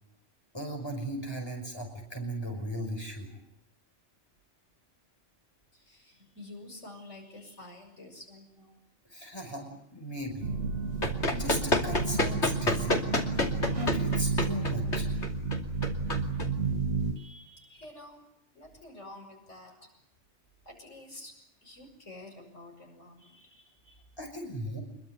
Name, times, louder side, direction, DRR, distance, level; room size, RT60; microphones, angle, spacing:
voice 1, 0.5-3.4 9.0-10.5 11.3-13.0 13.7-15.1 24.2-24.8, equal, 20° left, 3 dB, 5.8 m, -37 dB
voice 2, 5.7-8.8 9.3-9.4 17.1-18.2 18.5-19.9 20.6-21.3 21.6-24.0, left 1 dB, 85° left, 3 dB, 6.9 m, -49 dB
sound 1, 10.4-17.1, right 4 dB, 85° right, 2.1 m, -31 dB
Run, 10.6-17.1, left 2 dB, 70° left, 3.0 m, -30 dB
25.5 x 22.5 x 9.3 m, 0.78 s
omnidirectional pair, 1.2 m